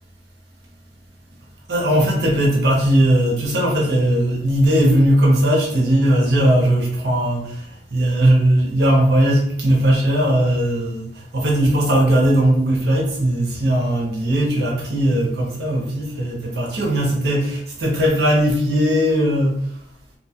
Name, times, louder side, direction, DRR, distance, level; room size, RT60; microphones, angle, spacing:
voice 1, 1.7-19.7, right 1 dB, 65° right, 0.8 m, -18 dB
2.7 x 2.3 x 2.7 m
head